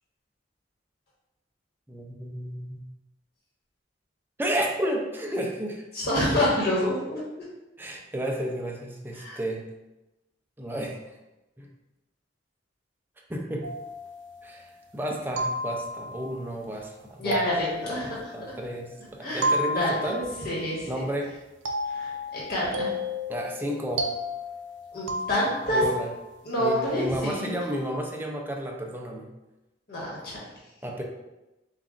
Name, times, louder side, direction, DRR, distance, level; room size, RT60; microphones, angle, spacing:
voice 1, 1.9-2.8 4.4-5.8 7.8-9.6 10.6-11.2 11.6-11.7 13.3-13.7 14.4-14.7 14.9-17.5 18.0-20.2 20.9-21.3 23.3-24.1 25.7-26.1 26.6-29.3 30.8-31.0, right 1 dB, 10° right, 0 dB, 0.5 m, -32 dB
voice 2, 5.9-7.2 9.2-9.4 17.2-18.3 19.2-19.5 19.7-21.0 21.9-22.9 24.9-25.8 26.4-27.6 29.9-30.4, equal, 55° left, -7 dB, 1.3 m, -27 dB
sound 1, 13.6-14.7 15.4-16.3 17.3-18.9 19.4-20.6 21.6-25.9, left 1 dB, 80° right, 0.5 m, -32 dB
7.2 x 2.4 x 2.5 m, 1.0 s
head